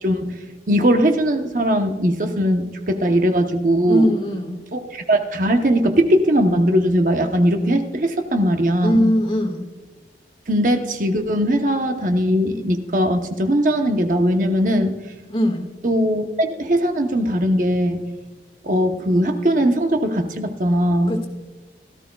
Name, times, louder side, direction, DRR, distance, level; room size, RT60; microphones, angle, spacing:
voice 1, 0.0-4.1 4.7-9.1 10.5-15.0 15.8-18.0 18.6-21.1, equal, 45° right, 5 dB, 0.8 m, -19 dB
voice 2, 3.8-4.6 8.8-9.7 15.3-15.7 21.1-21.3, equal, 30° left, 3 dB, 1.7 m, -20 dB
17.0 x 14.0 x 2.3 m, 1.2 s
head